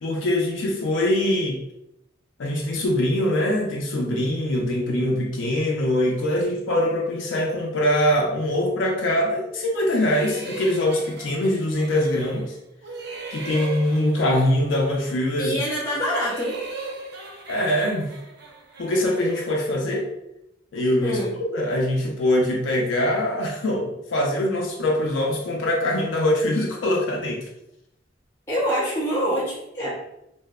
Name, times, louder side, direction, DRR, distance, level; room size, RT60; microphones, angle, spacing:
voice 1, 0.0-1.6 2.4-12.6 13.3-15.6 17.5-18.1 18.8-20.1 20.7-21.2 21.5-27.4, left 1 dB, 80° left, -1 dB, 0.4 m, -23 dB
sound 1, 9.8-12.5 12.8-15.4 15.8-19.6, right 3 dB, 60° right, 0.5 m, -38 dB
voice 2, 15.4-16.6 21.0-21.3 28.5-29.9, equal, 15° left, -9 dB, 0.7 m, -25 dB
2.6 x 2.0 x 2.3 m, 0.83 s
head